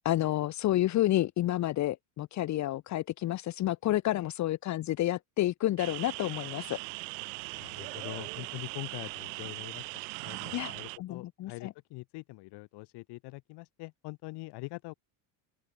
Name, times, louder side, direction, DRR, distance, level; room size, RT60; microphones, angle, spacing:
voice 1, 0.0-6.8 10.5-10.7 11.0-11.7, left 14 dB, 35° left, 1.7 m, -30 dB
sound 1, 5.8-11.0, right 33 dB, 75° right, 6.0 m, -40 dB
voice 2, 7.5-14.9, left 22 dB, 55° left, 8.0 m, -44 dB
open air
cardioid pair, 165°, 48 cm